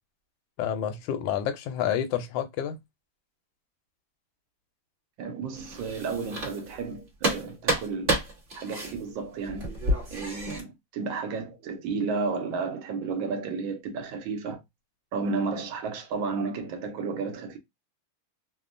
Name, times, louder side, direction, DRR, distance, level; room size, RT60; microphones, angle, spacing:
voice 1, 0.6-2.8, left 9 dB, 75° left, 1.2 m, -29 dB
voice 2, 5.2-8.2 8.5-9.7 10.1-14.6 15.1-17.6, right 4 dB, 75° right, 1.3 m, -32 dB
sound 1, 5.5-6.9 7.2-10.6, right 1 dB, 35° right, 0.9 m, -30 dB
3.5 x 2.0 x 2.4 m
omnidirectional pair, 2.3 m